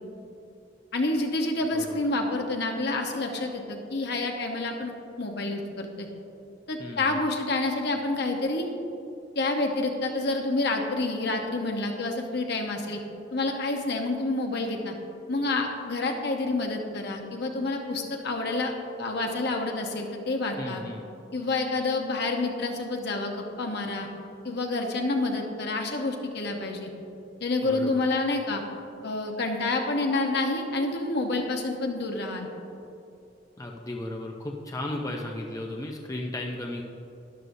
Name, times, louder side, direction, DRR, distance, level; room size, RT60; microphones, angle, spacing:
voice 1, 0.9-4.9 5.2-6.1 6.7-8.7 9.4-13.0 13.3-14.9 15.3-18.7 19.0-20.8 21.3-24.1 24.4-26.9 27.4-28.6 29.0-32.5, left 2 dB, 60° left, 2 dB, 1.1 m, -28 dB
voice 2, 1.7-2.1 6.8-7.2 20.6-21.0 27.6-27.9 33.6-36.8, left 1 dB, 20° left, 0 dB, 0.6 m, -35 dB
12.5 x 11.0 x 2.7 m, 2.7 s
head